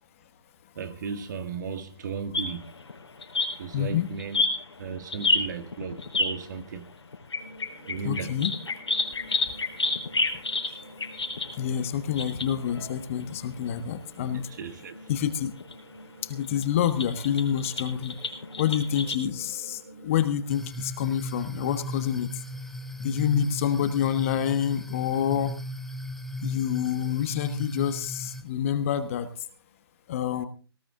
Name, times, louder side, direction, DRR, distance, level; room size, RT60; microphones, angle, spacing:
voice 1, 0.8-2.7 3.6-4.5 4.8-6.9 7.9-8.3 14.3-15.0, right 5 dB, 45° right, 2.0 m, -35 dB
sound 1, 2.3-6.4 7.1-13.3 13.6-13.7 14.2-14.3 15.6-15.7 16.4-19.1, left 3 dB, 85° left, 4.1 m, -30 dB
voice 2, 3.7-4.1 8.0-8.5 11.6-14.5 15.1-15.5 16.2-18.2 18.6-22.3 23.0-25.5 26.4-29.3 30.1-30.5, left 9 dB, 30° left, 1.3 m, -27 dB
sound 2, 7.3-20.4, right 1 dB, 80° right, 6.2 m, -49 dB
sound 3, 20.5-28.4, equal, ahead, 0.6 m, -37 dB
18.5 x 15.0 x 3.8 m
hypercardioid pair, 155°, 14 cm